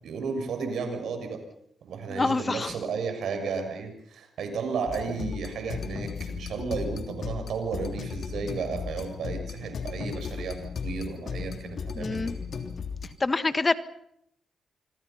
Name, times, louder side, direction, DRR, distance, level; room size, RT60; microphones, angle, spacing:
voice 1, 0.0-1.4 1.8-12.3, right 5 dB, 75° right, 6 dB, 6.6 m, -33 dB
voice 2, 2.1-2.8 12.0-12.4 13.2-13.7, left 3 dB, 30° left, 12 dB, 1.6 m, -26 dB
sound 1, 4.9-13.1, left 6 dB, 65° left, 3.2 m, -36 dB
27.0 x 25.0 x 5.8 m, 0.74 s
cardioid pair, 60°, 0 cm